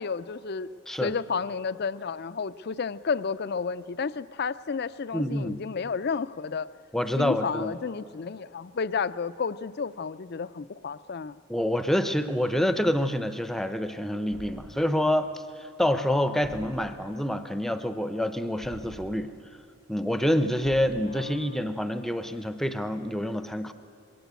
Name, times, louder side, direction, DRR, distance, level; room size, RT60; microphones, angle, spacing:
voice 1, 0.0-0.7 1.0-6.7 7.2-11.4 21.0-21.5, left 5 dB, 45° left, 15 dB, 0.4 m, -31 dB
voice 2, 5.1-5.6 6.9-7.7 11.5-19.3 19.9-23.7, left 1 dB, ahead, 10 dB, 0.6 m, -27 dB
sound 1, 14.3-15.2 16.4-17.4 18.6-19.6 20.6-21.5, right 1 dB, 65° right, 1.7 m, -47 dB
21.5 x 17.5 x 8.2 m, 2.5 s
head